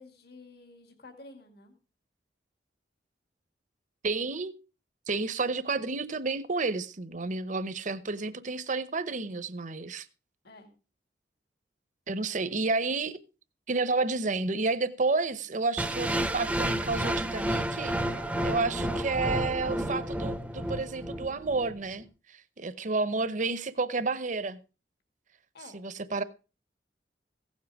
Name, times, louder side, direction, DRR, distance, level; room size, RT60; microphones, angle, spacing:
voice 1, 0.0-1.7 10.4-10.7 12.3-12.4 25.5-25.8, left 2 dB, 65° left, 2.3 m, -50 dB
voice 2, 4.0-4.5 5.1-10.1 12.1-13.2 13.7-22.0 22.6-24.6 25.7-26.2, right 3 dB, 45° right, 0.9 m, -30 dB
sound 1, 15.8-21.8, right 1 dB, 5° right, 0.7 m, -31 dB
16.0 x 7.5 x 4.8 m
head